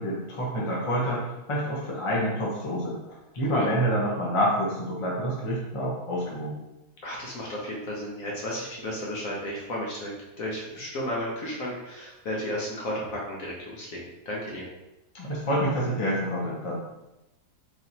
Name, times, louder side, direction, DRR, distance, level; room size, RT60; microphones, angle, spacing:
voice 1, 0.0-3.0 3.4-6.6 15.1-16.9, equal, 25° left, -5 dB, 0.9 m, -27 dB
voice 2, 7.0-10.1 10.4-14.7, left 1 dB, 60° left, -3 dB, 1.2 m, -33 dB
4.7 x 3.2 x 2.8 m, 0.94 s
omnidirectional pair, 1.7 m